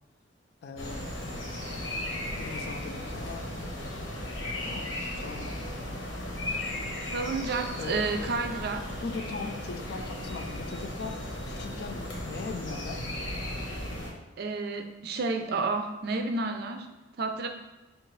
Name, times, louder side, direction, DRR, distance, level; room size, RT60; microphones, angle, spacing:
voice 1, 0.6-1.1 2.4-3.5 4.6-6.0 7.8-8.3 9.0-11.2 11.5-13.0, left 4 dB, 60° left, 7 dB, 0.3 m, -40 dB
sound 1, 0.8-14.1, left 1 dB, 90° left, 1.0 m, -36 dB
voice 2, 7.1-9.0 14.4-16.9 17.2-17.5, right 3 dB, 55° right, 5 dB, 0.4 m, -31 dB
4.5 x 2.5 x 3.1 m, 1.1 s
head